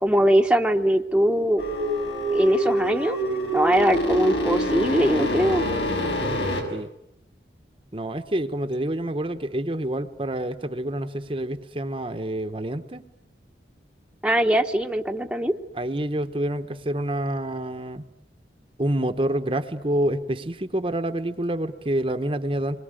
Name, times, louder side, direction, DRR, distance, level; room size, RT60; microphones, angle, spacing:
voice 1, 0.0-1.6 2.3-3.2 3.5-5.6 14.2-15.5, right 1 dB, 5° right, 3 dB, 1.0 m, -21 dB
sound 1, 1.6-6.6, equal, 75° left, 6.5 m, -25 dB
voice 2, 7.9-13.0 15.7-18.0 18.8-22.8, right 1 dB, 30° right, 8 dB, 1.0 m, -27 dB
28.5 x 22.5 x 9.0 m, 0.83 s
head